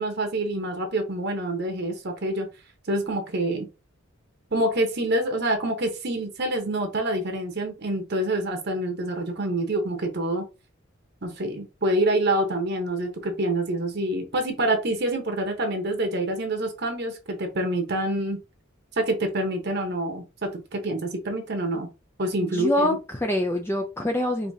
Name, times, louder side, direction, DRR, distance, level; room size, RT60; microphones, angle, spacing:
voice 1, 0.0-2.5 2.9-3.7 4.5-10.5 11.2-18.4 19.0-21.9 22.2-23.0, right 1 dB, 50° right, 0.8 m, -26 dB
voice 2, 22.4-24.5, left 1 dB, 10° left, 0.4 m, -25 dB
4.7 x 2.8 x 2.6 m
head